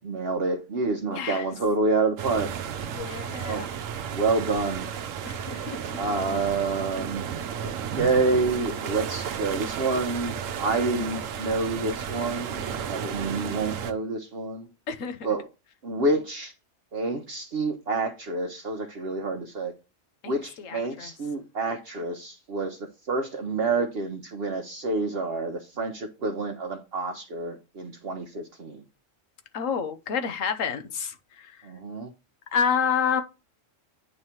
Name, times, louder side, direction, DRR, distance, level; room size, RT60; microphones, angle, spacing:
voice 1, 0.0-2.5 3.5-3.7 4.1-4.9 6.0-7.3 7.6-14.7 15.2-15.5 15.8-16.5 16.9-19.7 20.3-28.8 31.6-32.1, right 3 dB, 55° right, 1.0 m, -28 dB
voice 2, 1.1-1.4 2.9-3.7 5.2-5.8 14.9-15.2 20.2-21.1 29.5-31.5 32.5-33.2, left 6 dB, 85° left, 1.3 m, -29 dB
sound 1, 2.2-13.9, right 8 dB, 85° right, 1.1 m, -33 dB
8.8 x 3.2 x 5.6 m
omnidirectional pair, 1.3 m